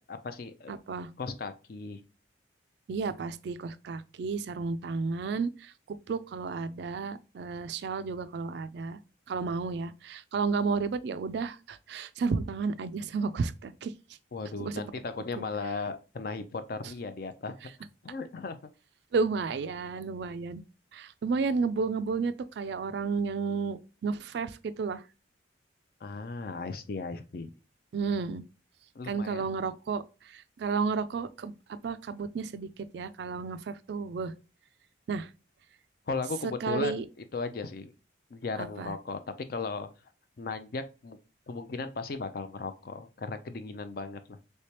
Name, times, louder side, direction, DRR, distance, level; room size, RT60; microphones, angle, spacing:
voice 1, 0.0-0.7 1.2-2.0 14.3-17.5 18.0-18.6 26.0-27.5 29.0-29.4 36.1-37.9 38.3-39.2 39.5-39.9 40.4-41.2 41.5-44.2, left 4 dB, 50° left, 0.4 m, -36 dB
voice 2, 0.7-1.1 2.9-9.0 9.3-13.9 14.6-14.8 15.4-15.5 19.1-20.6 20.9-25.0 27.9-28.4 29.1-31.5 31.8-32.7 32.9-34.3 35.1-35.3 36.6-37.0 38.6-38.9, right 4 dB, 60° right, 0.3 m, -32 dB
3.3 x 3.3 x 2.8 m
head